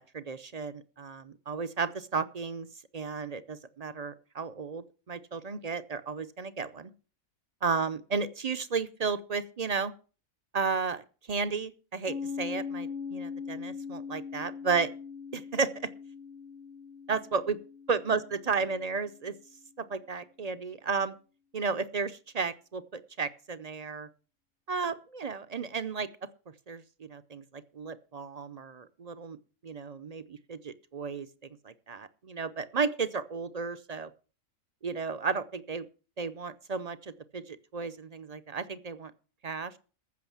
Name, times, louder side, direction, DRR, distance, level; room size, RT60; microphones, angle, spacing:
voice 1, 0.0-2.7 2.9-6.9 7.6-9.9 10.5-11.0 11.3-14.9 15.3-15.7 17.1-17.6 17.9-19.3 19.8-21.2 21.5-24.1 24.7-26.1 26.7-29.4 29.6-31.3 31.6-34.1 34.8-35.9 36.2-39.1 39.4-39.7, right 5 dB, 45° right, 13 dB, 0.5 m, -33 dB
Piano, 12.1-19.3, left 5 dB, 80° right, 2.0 m, -41 dB
14.5 x 6.3 x 7.2 m, 0.37 s
omnidirectional pair, 1.4 m